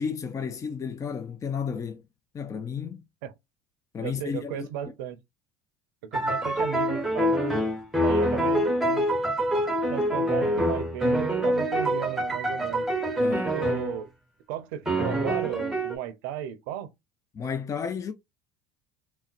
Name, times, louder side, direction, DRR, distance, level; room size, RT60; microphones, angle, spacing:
voice 1, 0.0-2.0 2.3-3.0 3.9-4.7 13.2-13.6 17.3-18.1, left 6 dB, 30° left, 0.5 m, -32 dB
voice 2, 4.0-5.2 6.0-7.4 8.0-9.1 9.9-12.9 13.5-14.1 14.5-16.9, right 10 dB, 75° right, 0.6 m, -35 dB
sound 1, 6.1-14.0 14.9-16.0, equal, 5° right, 0.8 m, -25 dB
3.9 x 2.1 x 2.4 m
hypercardioid pair, 85°, 11 cm